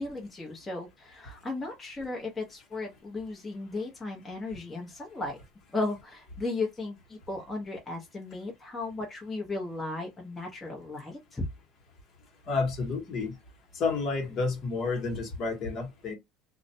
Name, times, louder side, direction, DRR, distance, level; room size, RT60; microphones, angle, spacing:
voice 1, 0.0-5.4 5.7-11.5 14.2-14.3, left 2 dB, 15° left, 0.8 m, -35 dB
voice 2, 12.5-13.4 13.7-16.1, left 4 dB, 50° left, 1.0 m, -30 dB
2.4 x 2.1 x 2.6 m
supercardioid pair, 120°, 0 cm